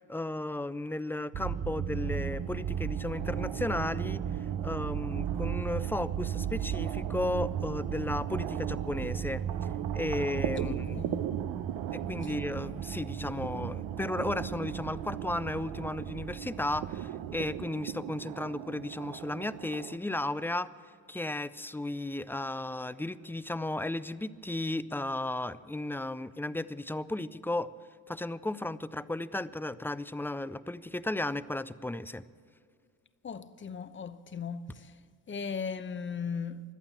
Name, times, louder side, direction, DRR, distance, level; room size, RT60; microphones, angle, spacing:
voice 1, 0.0-4.2 4.6-9.5 9.9-11.0 11.9-20.7 21.1-27.7 28.1-32.2, left 2 dB, 5° left, 0.4 m, -34 dB
sound 1, 1.3-17.7, right 9 dB, 40° right, 0.6 m, -36 dB
sound 2, 2.0-20.0, right 11 dB, 85° right, 0.8 m, -40 dB
voice 2, 10.6-11.4 12.2-12.3 33.2-36.6, left 6 dB, 30° left, 0.8 m, -38 dB
17.5 x 11.5 x 7.1 m
cardioid pair, 90°, 37 cm